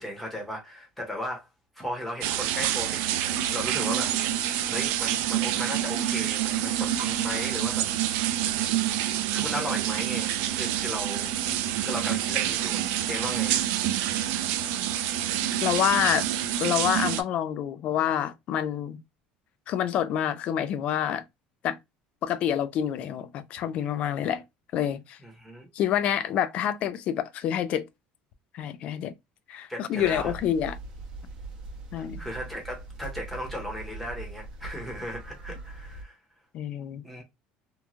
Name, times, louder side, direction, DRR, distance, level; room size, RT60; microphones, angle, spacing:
voice 1, 0.0-1.5 1.7-4.2 4.7-7.9 8.6-8.8 9.3-11.3 11.8-13.6 25.2-25.7 29.7-30.3 32.0-36.2 37.0-37.2, equal, 5° left, 0.9 m, -36 dB
sound 1, 2.2-17.2, right 12 dB, 75° right, 0.3 m, -27 dB
voice 2, 15.6-16.3 16.6-19.0 19.7-21.2 21.6-21.8 22.2-24.4 24.7-25.2 25.7-27.9 28.5-29.1 29.5-30.8 31.9-32.2 36.5-37.0, left 10 dB, 40° left, 0.3 m, -27 dB
sound 2, 30.0-36.0, right 3 dB, 30° right, 0.7 m, -41 dB
3.0 x 2.2 x 2.4 m
cardioid pair, 175°, 3 cm